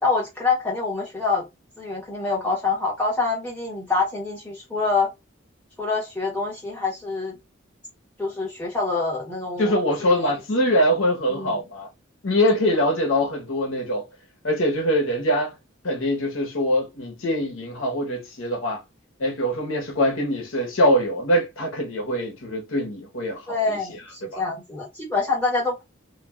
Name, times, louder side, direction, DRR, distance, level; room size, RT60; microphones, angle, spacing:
voice 1, 0.0-1.5 1.8-5.1 5.8-7.4 8.2-10.3 11.3-11.6 23.5-25.9, left 3 dB, 10° left, 1.6 m, -26 dB
voice 2, 9.6-11.9 12.2-14.1 14.4-15.5 15.8-18.8 19.2-23.8 24.2-24.4, equal, 90° left, 1.0 m, -23 dB
3.3 x 2.4 x 2.3 m
head